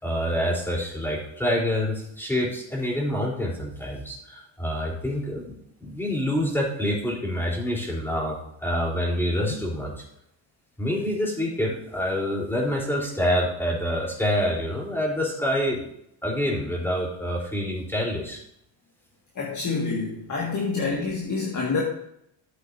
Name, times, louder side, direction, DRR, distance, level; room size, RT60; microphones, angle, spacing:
voice 1, 0.0-9.9 10.8-15.9 16.2-18.4, equal, 5° left, -3 dB, 3.8 m, -27 dB
voice 2, 19.4-21.8, left 4 dB, 35° left, -2 dB, 1.9 m, -27 dB
13.0 x 8.0 x 2.7 m, 0.74 s
cardioid pair, 100°, 49 cm